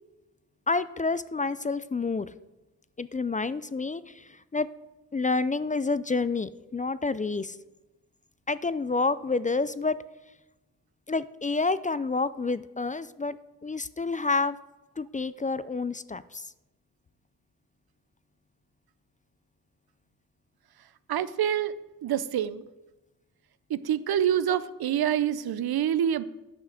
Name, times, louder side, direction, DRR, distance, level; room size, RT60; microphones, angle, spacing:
voice 1, 0.7-2.3 3.0-4.7 5.1-7.6 8.5-10.0 11.1-14.6 15.0-16.5, left 3 dB, 20° left, 16 dB, 0.3 m, -29 dB
voice 2, 21.1-21.7 22.0-22.6 23.7-26.2, right 10 dB, 80° right, 15 dB, 0.6 m, -26 dB
9.9 x 5.8 x 6.4 m, 1.0 s
cardioid pair, 65°, 37 cm